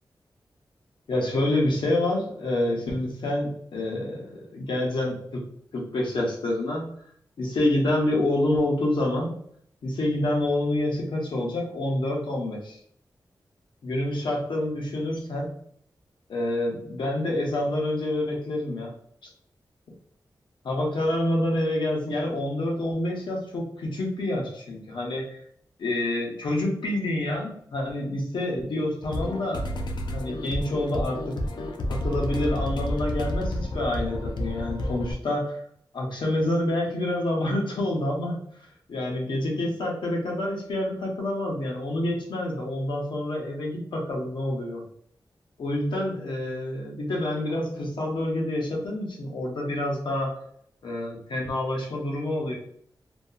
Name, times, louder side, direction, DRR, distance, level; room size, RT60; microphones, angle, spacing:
voice 1, 1.1-5.4 5.7-6.9 7.4-9.4 9.8-12.8 13.8-15.6 16.3-18.9 20.6-25.4 25.8-31.3 31.9-35.6 35.9-38.4 38.9-44.8 45.6-50.3 50.8-52.5, left 1 dB, 90° left, -1 dB, 0.8 m, -27 dB
sound 1, 29.0-35.1, left 1 dB, 70° left, 0.4 m, -30 dB
2.7 x 2.4 x 2.3 m, 0.64 s
wide cardioid pair, 140°, 8 cm